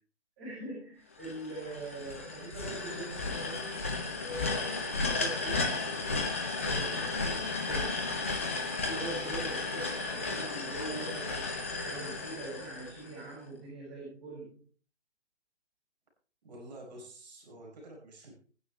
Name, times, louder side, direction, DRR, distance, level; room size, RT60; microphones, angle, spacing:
voice 1, 0.4-3.8 4.2-6.2 6.6-8.0 8.7-14.6, right 2 dB, 20° right, -7 dB, 7.1 m, -43 dB
sound 1, 1.2-13.3, left 3 dB, 10° left, 0.6 m, -34 dB
voice 2, 16.4-18.3, right 1 dB, 40° right, -1 dB, 5.3 m, -48 dB
18.5 x 10.5 x 3.3 m, 0.41 s
figure-of-eight pair, 155°, 34 cm